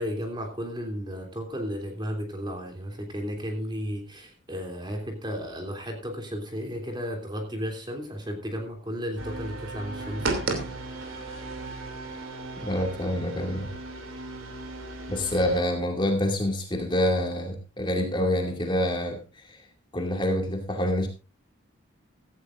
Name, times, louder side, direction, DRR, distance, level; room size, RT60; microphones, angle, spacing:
voice 1, 0.0-10.6, equal, 20° right, 3.0 m, -34 dB
sound 1, 9.2-15.6, right 2 dB, 80° right, 2.9 m, -35 dB
voice 2, 12.6-13.7 15.1-19.6 19.9-21.1, left 1 dB, 25° left, 2.4 m, -27 dB
16.5 x 14.5 x 2.6 m
head